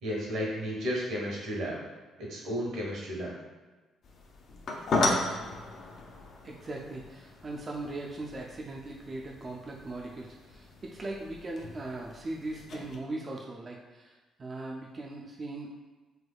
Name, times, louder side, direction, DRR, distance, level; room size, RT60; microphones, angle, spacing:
voice 1, 0.0-1.8 2.2-3.3, equal, 90° right, -3 dB, 1.2 m, -33 dB
sound 1, 4.0-13.0, left 2 dB, 55° left, 0.5 m, -36 dB
voice 2, 6.4-15.7, right 2 dB, 30° right, -2 dB, 0.3 m, -39 dB
3.3 x 3.1 x 2.3 m, 1.3 s
cardioid pair, 115°, 0 cm